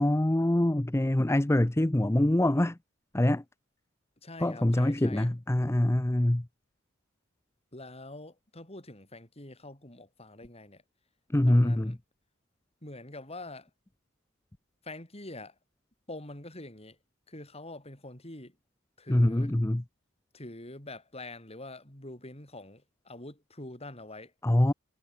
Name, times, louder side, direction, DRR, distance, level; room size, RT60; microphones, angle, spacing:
voice 1, 0.0-2.8 3.1-3.4 4.4-6.5 11.3-12.0 19.1-19.8 24.4-24.7, left 1 dB, 15° left, 0.6 m, -24 dB
voice 2, 4.2-5.3 7.7-10.8 11.4-12.0 12.8-13.7 14.8-15.5 16.1-17.0 17.3-18.5 19.0-19.5 20.3-24.3, left 2 dB, 30° left, 6.0 m, -45 dB
head